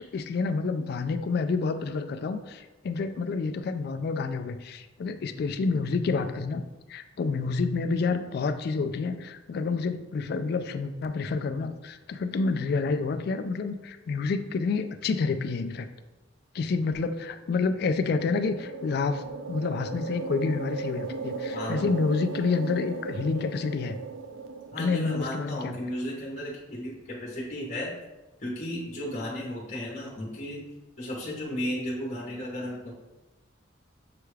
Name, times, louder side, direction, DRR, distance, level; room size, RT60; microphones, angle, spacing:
voice 1, 0.1-6.6 6.9-15.9 16.5-24.0 24.8-25.8, left 4 dB, 55° left, 9 dB, 0.3 m, -28 dB
sound 1, 17.8-25.5, right 4 dB, 85° right, 0.4 m, -37 dB
voice 2, 21.5-21.8 24.7-28.0 28.4-30.6 31.0-32.9, left 1 dB, 40° left, -3 dB, 0.9 m, -34 dB
6.7 x 2.3 x 3.2 m, 1.1 s
head